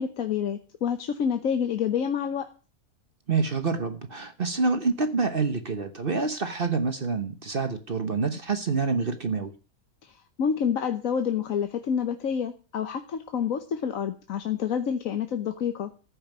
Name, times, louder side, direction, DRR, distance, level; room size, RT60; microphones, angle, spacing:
voice 1, 0.0-2.5 10.0-15.9, left 7 dB, 70° left, 7 dB, 1.4 m, -28 dB
voice 2, 3.3-9.5, right 4 dB, 40° right, 8 dB, 1.2 m, -27 dB
14.0 x 5.4 x 9.3 m, 0.37 s
omnidirectional pair, 1.5 m